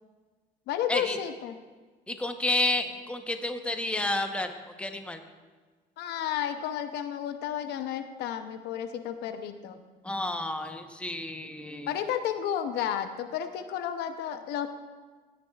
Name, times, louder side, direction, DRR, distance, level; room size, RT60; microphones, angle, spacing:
voice 1, 0.7-1.6 6.0-9.8 11.9-14.8, left 9 dB, 80° left, 9 dB, 0.7 m, -32 dB
voice 2, 2.1-5.2 10.0-11.9, left 2 dB, 5° left, 6 dB, 0.9 m, -30 dB
16.0 x 9.5 x 2.4 m, 1.4 s
cardioid pair, 110°, 17 cm